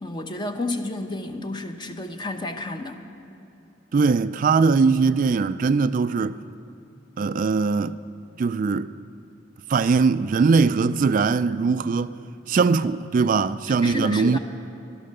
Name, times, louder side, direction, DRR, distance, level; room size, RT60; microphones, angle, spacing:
voice 1, 0.0-3.0 13.7-14.4, left 2 dB, 25° left, 0.8 m, -31 dB
voice 2, 3.9-6.4 7.2-8.0 8.4-8.9 9.7-12.1 12.5-14.4, right 4 dB, 45° right, 0.3 m, -21 dB
15.0 x 12.0 x 6.7 m
head